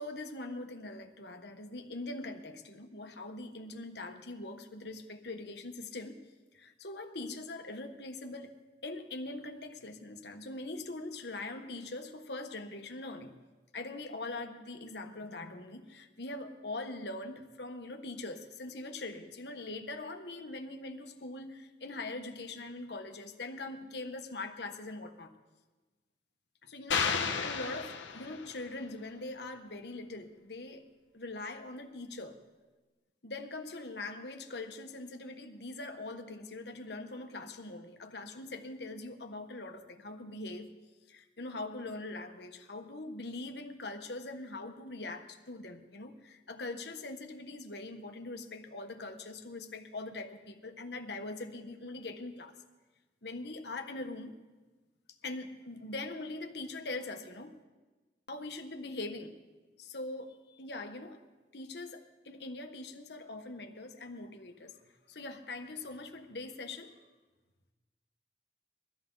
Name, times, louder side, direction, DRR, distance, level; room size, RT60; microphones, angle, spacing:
voice 1, 0.0-6.2 6.5-13.4 13.7-25.3 26.6-27.1 27.4-30.9 31.1-32.4 33.2-40.7 41.1-52.6 53.2-54.4 55.2-57.6 58.3-59.4 59.8-61.2 61.5-66.9, left 2 dB, 65° left, 5 dB, 1.3 m, -42 dB
sound 1, 26.9-28.6, left 6 dB, 85° left, 1.1 m, -32 dB
23.0 x 14.0 x 4.0 m, 1.2 s
head